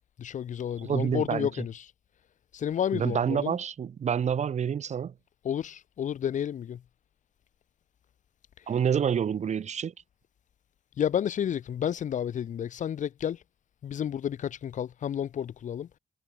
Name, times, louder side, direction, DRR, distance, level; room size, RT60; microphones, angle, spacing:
voice 1, 0.2-1.9 2.5-3.6 5.4-6.8 8.7-8.8 11.0-13.4 13.8-15.9, left 9 dB, 65° left, 2.2 m, -31 dB
voice 2, 0.8-1.5 2.9-5.1 8.7-9.9, right 8 dB, 55° right, 1.8 m, -28 dB
cardioid pair, 70°, 14 cm